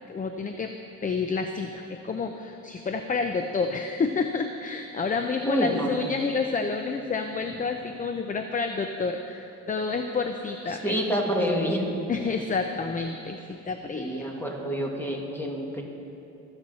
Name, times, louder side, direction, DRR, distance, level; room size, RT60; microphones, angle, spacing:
voice 1, 0.1-0.7 1.0-11.0 12.1-14.3, left 4 dB, 25° left, 6 dB, 0.7 m, -29 dB
voice 2, 5.4-5.9 10.8-11.8 14.0-15.8, equal, 5° left, -1 dB, 2.6 m, -27 dB
24.0 x 8.0 x 4.2 m, 2.8 s
cardioid pair, 90°, 30 cm